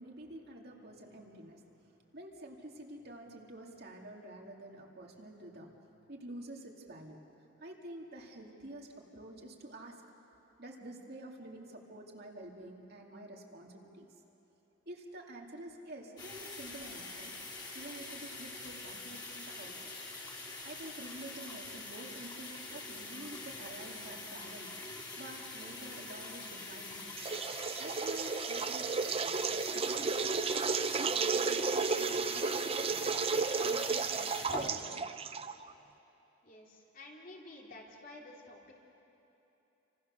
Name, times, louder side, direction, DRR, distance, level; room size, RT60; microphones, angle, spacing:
voice 1, 0.0-5.7 6.1-7.2 7.6-10.0 10.6-14.1 14.9-17.3 17.7-19.9 20.6-24.8 25.2-27.1 27.8-33.3 33.6-35.0, right 1 dB, 50° right, 0 dB, 2.4 m, -49 dB
sound 1, 16.2-34.7, left 2 dB, 20° left, 3.7 m, -45 dB
sound 2, 27.2-35.7, right 4 dB, 30° right, 0.6 m, -33 dB
voice 2, 36.4-38.7, left 2 dB, 40° left, -2 dB, 3.3 m, -51 dB
30.0 x 26.0 x 6.6 m, 3.0 s
head